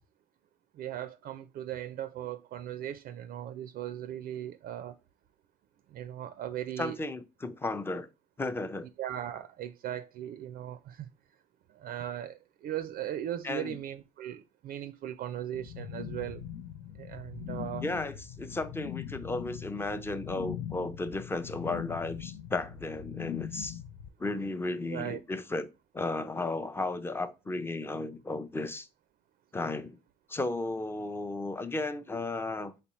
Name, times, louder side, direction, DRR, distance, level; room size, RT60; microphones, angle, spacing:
voice 1, 0.7-5.0 5.9-7.0 9.0-11.1 11.7-16.4 16.9-17.8 24.9-25.2, right 11 dB, 60° right, 0.4 m, -38 dB
voice 2, 6.8-8.1 8.4-8.9 13.4-13.8 17.8-23.8 24.2-25.7 25.9-28.9 29.5-30.0 30.3-32.7, left 2 dB, 15° left, 0.5 m, -34 dB
sound 1, 15.5-24.1, left 10 dB, 80° left, 0.5 m, -41 dB
4.2 x 3.8 x 2.9 m
cardioid pair, 110°, 17 cm